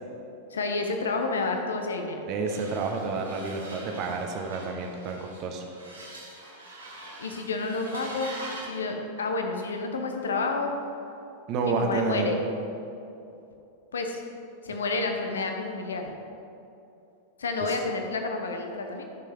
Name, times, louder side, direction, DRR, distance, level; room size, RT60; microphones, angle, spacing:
voice 1, 0.5-2.3 7.2-8.3 8.6-10.8 11.6-12.4 13.9-14.2 14.6-16.1 17.4-19.0, left 3 dB, 70° left, 4 dB, 1.0 m, -30 dB
voice 2, 2.3-5.7 11.5-12.4 17.7-17.8, right 4 dB, 40° right, 4 dB, 1.1 m, -29 dB
sound 1, 2.5-8.8, right 1 dB, 75° right, 1.8 m, -43 dB
13.0 x 6.6 x 3.6 m, 2.7 s
figure-of-eight pair, 90°, 0 cm